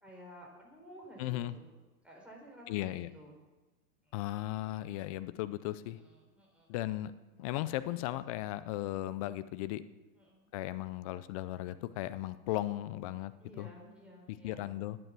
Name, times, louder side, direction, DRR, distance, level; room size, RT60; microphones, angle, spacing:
voice 1, 0.0-1.7 2.0-3.4 4.0-4.2 5.8-6.7 10.1-10.5 13.4-14.7, equal, ahead, -3 dB, 4.1 m, -54 dB
voice 2, 1.2-1.6 2.7-3.1 4.1-6.0 6.7-7.1 7.4-9.8 10.5-13.7 14.3-15.0, left 15 dB, 25° left, 14 dB, 0.3 m, -36 dB
11.0 x 9.4 x 7.5 m, 1.2 s
hypercardioid pair, 125°, 45 cm